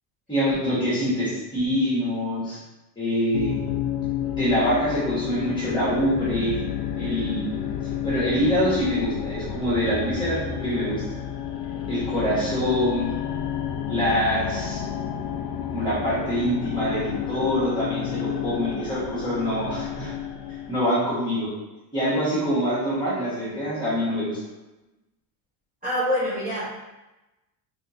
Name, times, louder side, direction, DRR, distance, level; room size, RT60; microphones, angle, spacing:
voice 1, 0.3-2.6 3.0-3.5 4.3-6.6 6.9-7.5 8.0-11.0 11.9-13.1 13.9-14.8 15.7-20.1 20.7-21.5 21.9-24.4, equal, 10° left, -9 dB, 1.4 m, -25 dB
sound 1, 3.3-20.8, left 9 dB, 85° left, 0.6 m, -30 dB
voice 2, 25.8-26.7, equal, 15° right, -12 dB, 0.9 m, -25 dB
3.5 x 2.5 x 2.8 m, 1.0 s
cardioid pair, 145°, 49 cm